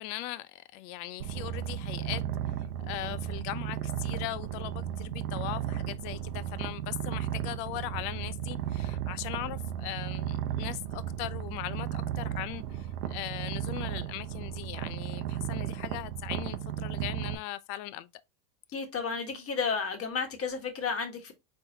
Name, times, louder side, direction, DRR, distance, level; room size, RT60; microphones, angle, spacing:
voice 1, 0.0-2.2 2.8-18.1, left 16 dB, 55° left, 0.6 m, -39 dB
Purr, 1.2-17.4, right 11 dB, 75° right, 0.8 m, -35 dB
voice 2, 18.7-21.3, left 5 dB, 30° left, 1.4 m, -32 dB
4.2 x 3.6 x 2.7 m
supercardioid pair, 100°, 46 cm